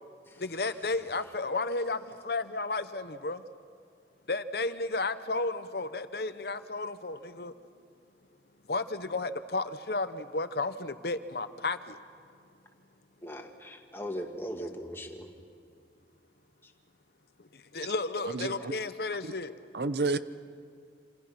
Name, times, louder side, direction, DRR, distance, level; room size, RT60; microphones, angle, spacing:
voice 1, 0.4-2.0 2.2-3.4 4.3-7.5 8.7-12.0 17.7-19.5, left 3 dB, 60° left, 0.9 m, -33 dB
voice 2, 13.2-15.3, equal, 15° left, 2.1 m, -39 dB
voice 3, 18.3-18.7 19.2-19.3 19.7-20.2, right 3 dB, 65° right, 0.8 m, -30 dB
27.5 x 27.5 x 6.0 m
head